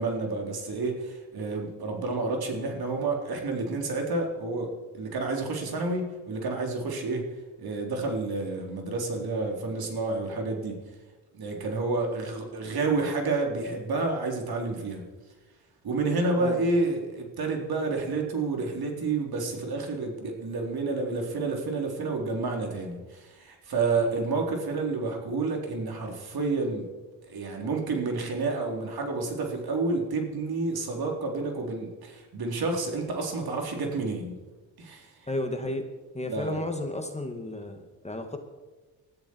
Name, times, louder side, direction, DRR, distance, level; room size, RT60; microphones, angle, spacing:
voice 1, 0.0-7.3 7.6-10.8 11.4-15.0 15.8-26.9 27.3-34.4 34.8-35.1 36.3-36.6, right 3 dB, 60° right, 2 dB, 4.0 m, -29 dB
voice 2, 35.3-35.9 36.1-38.4, left 1 dB, 15° left, 5 dB, 2.2 m, -33 dB
20.0 x 13.5 x 4.7 m, 1.2 s
supercardioid pair, 70°, 42 cm